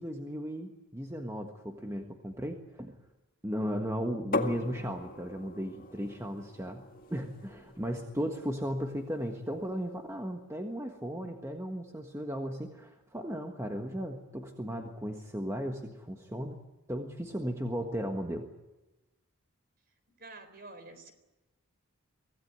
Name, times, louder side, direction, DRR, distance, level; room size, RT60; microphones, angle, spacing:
voice 1, 0.0-2.9 3.4-6.8 7.1-16.6 16.9-18.5, equal, 15° right, 3 dB, 1.5 m, -36 dB
sound 1, 4.3-10.0, left 2 dB, 40° left, 2.1 m, -40 dB
voice 2, 20.2-21.1, right 3 dB, 40° right, 9 dB, 3.9 m, -48 dB
24.5 x 16.5 x 9.5 m, 1.1 s
head